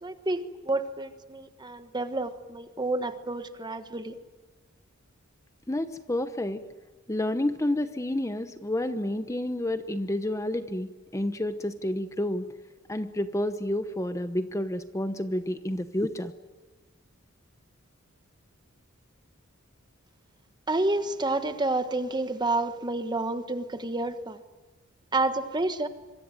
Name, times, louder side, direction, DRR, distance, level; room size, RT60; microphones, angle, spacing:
voice 1, 0.0-4.2 20.7-24.4 25.1-25.9, right 2 dB, 20° right, 10 dB, 1.4 m, -29 dB
voice 2, 5.7-6.6 7.1-12.4 12.9-16.3, left 1 dB, 15° left, 10 dB, 1.0 m, -29 dB
26.0 x 24.0 x 9.2 m, 1.2 s
head